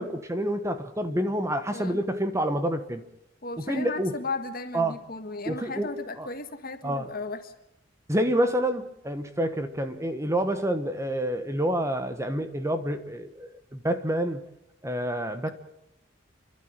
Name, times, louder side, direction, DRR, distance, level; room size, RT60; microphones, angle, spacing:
voice 1, 0.0-3.0 3.7-4.1 4.7-5.0 5.5-5.9 6.2-6.3 6.8-7.0 8.1-14.4 14.8-15.5, right 1 dB, 15° right, 1.3 m, -28 dB
voice 2, 1.7-2.0 3.4-7.5, left 3 dB, 50° left, 1.7 m, -35 dB
29.5 x 12.0 x 9.1 m
head